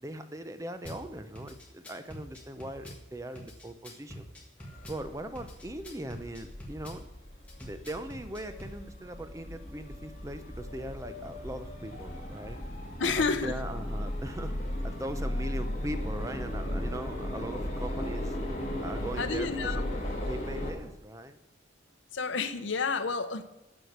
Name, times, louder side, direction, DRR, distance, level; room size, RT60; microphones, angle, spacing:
voice 1, 0.0-4.3 4.9-7.1 7.6-12.6 13.0-14.5 14.8-18.4 18.8-20.0 20.3-21.4, right 1 dB, 15° right, 0.6 m, -40 dB
Drum kit / Bass drum, 0.8-1.0 1.3-3.0 3.3-5.0 5.3-7.0 7.5-8.8, equal, 5° left, 1.8 m, -45 dB
sound 1, 4.6-20.7, left 1 dB, 35° left, 2.6 m, -36 dB
voice 2, 13.0-13.6 19.2-19.8 22.1-23.4, left 4 dB, 75° left, 0.7 m, -30 dB
9.4 x 6.4 x 6.5 m
head